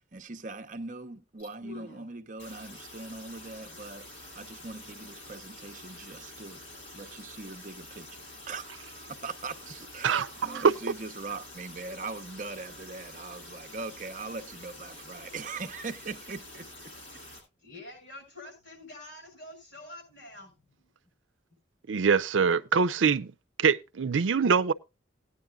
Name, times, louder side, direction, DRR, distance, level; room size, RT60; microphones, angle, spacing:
voice 1, 0.0-4.1 4.3-8.2 8.5-16.9, right 3 dB, 45° right, 0.8 m, -41 dB
sound 1, 1.4-2.1 2.4-17.4, left 1 dB, 85° left, 7.0 m, -47 dB
voice 2, 10.0-10.6 21.9-23.3 23.6-24.7, right 6 dB, 85° right, 0.5 m, -24 dB
voice 3, 16.9-20.9, left 1 dB, 70° left, 6.7 m, -48 dB
18.0 x 9.6 x 2.3 m
head